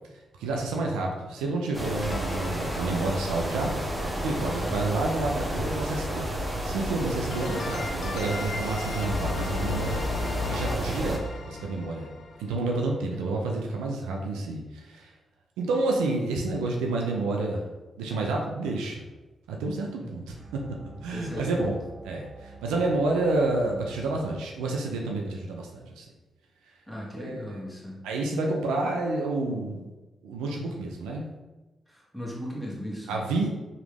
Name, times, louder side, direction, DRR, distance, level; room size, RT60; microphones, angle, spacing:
voice 1, 0.4-3.7 4.1-12.1 12.4-15.1 15.6-17.7 18.0-19.1 19.5-21.8 22.0-26.1 27.2-27.4 28.0-29.8 30.2-31.3 33.1-33.5, right 2 dB, 85° right, 0 dB, 0.4 m, -29 dB
sound 1, 1.7-11.2, right 1 dB, 20° right, 1.0 m, -31 dB
sound 2, 2.1-4.2 7.3-13.0, left 5 dB, 65° left, 0.4 m, -36 dB
sound 3, 20.3-24.4, right 5 dB, 50° right, 0.7 m, -48 dB
voice 2, 21.1-21.7 26.9-28.0 31.9-33.2, equal, 5° right, -4 dB, 1.3 m, -37 dB
3.1 x 2.4 x 3.3 m, 1.1 s
hypercardioid pair, 40°, 0 cm